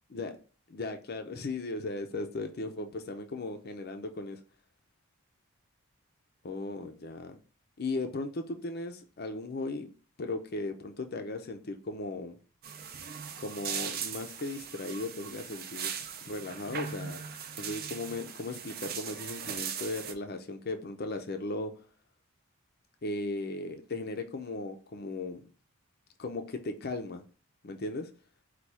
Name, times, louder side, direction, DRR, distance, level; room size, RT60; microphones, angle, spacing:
voice 1, 0.7-4.4 6.4-7.4 7.8-9.9 10.2-12.4 13.4-15.9 16.2-17.2 17.6-21.7 23.0-25.4 26.2-27.2 27.6-28.1, left 2 dB, 45° left, 0.5 m, -37 dB
sound 1, 12.6-20.1, right 7 dB, 45° right, 0.5 m, -39 dB
4.6 x 2.3 x 4.1 m
head